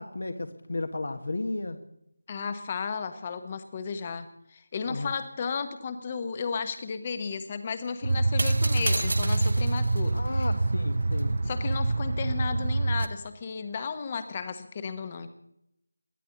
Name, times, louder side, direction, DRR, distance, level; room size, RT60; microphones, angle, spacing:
voice 1, 0.0-1.8 4.9-5.1 8.7-9.0 10.1-11.3, left 2 dB, 55° left, 8 dB, 1.5 m, -34 dB
voice 2, 2.3-10.5 11.4-15.3, left 5 dB, 25° left, 10 dB, 1.3 m, -34 dB
sound 1, 8.0-13.1, right 2 dB, 50° right, 0.9 m, -26 dB
22.5 x 14.5 x 4.0 m, 0.78 s
figure-of-eight pair, 165°, 0 cm